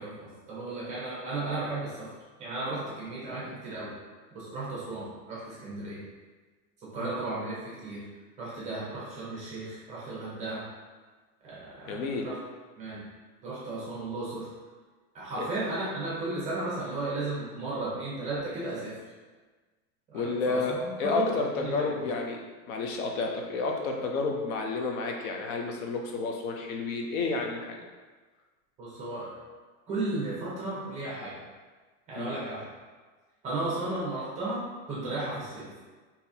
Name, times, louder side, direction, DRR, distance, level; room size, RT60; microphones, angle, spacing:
voice 1, 0.0-2.1 2.4-3.9 4.3-6.0 6.9-8.0 8.4-10.6 11.4-12.4 12.8-13.0 13.4-14.5 15.1-18.9 20.1-22.1 28.8-29.4 29.9-31.3 32.1-32.7 33.4-35.7, right 2 dB, 15° right, -7 dB, 0.7 m, -34 dB
voice 2, 11.9-12.3 15.4-15.5 20.1-22.4 22.7-27.8 32.2-32.4, left 3 dB, 65° left, 1 dB, 0.6 m, -30 dB
3.9 x 2.8 x 2.6 m, 1.4 s
supercardioid pair, 165°, 45 cm